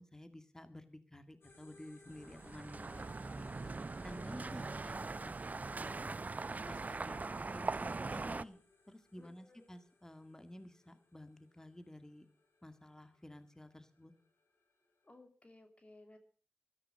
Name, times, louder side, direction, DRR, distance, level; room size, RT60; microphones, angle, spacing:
voice 1, 0.0-3.1 3.4-5.3 5.6-6.3 6.7-8.6 8.9-12.3 12.6-14.1, left 1 dB, 15° left, 10 dB, 2.0 m, -53 dB
sound 1, 1.4-15.1, left 3 dB, 80° left, 3.6 m, -64 dB
sound 2, 2.2-8.4, right 3 dB, 45° right, 0.6 m, -41 dB
voice 2, 9.2-9.7 15.0-16.2, left 2 dB, 35° left, 6 dB, 2.8 m, -59 dB
13.5 x 13.0 x 6.5 m, 0.41 s
cardioid pair, 50°, 4 cm